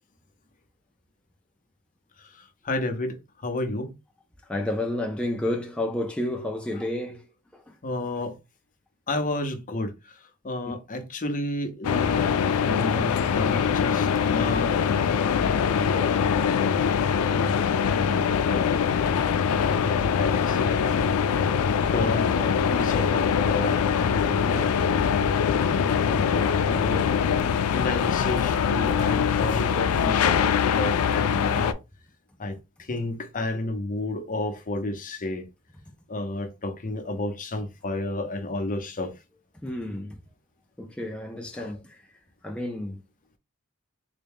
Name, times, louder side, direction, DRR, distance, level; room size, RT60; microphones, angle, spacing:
voice 1, 2.2-3.9 7.8-8.4 9.1-16.8 17.5-19.2 19.5-21.2 21.7-24.7 26.0-27.1 27.7-31.8 32.4-35.4 36.1-39.1 41.6-41.7, left 2 dB, 40° left, 0.7 m, -32 dB
voice 2, 4.5-7.2 7.5-7.7 10.6-10.7 17.3-17.6 25.7-26.0 39.6-40.2 40.8-42.0 42.4-43.0, left 1 dB, 5° left, 0.4 m, -31 dB
sound 1, 11.8-31.7, left 7 dB, 85° left, 0.4 m, -23 dB
3.6 x 2.2 x 3.5 m
head